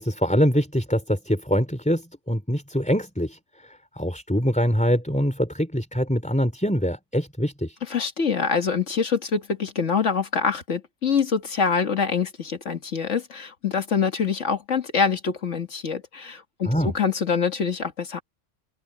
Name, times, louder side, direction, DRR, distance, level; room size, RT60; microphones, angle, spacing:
voice 1, 0.0-7.8 16.7-16.9, equal, 5° left, 3.7 m, -24 dB
voice 2, 7.9-18.2, left 6 dB, 90° left, 2.1 m, -25 dB
open air
omnidirectional pair, 1.2 m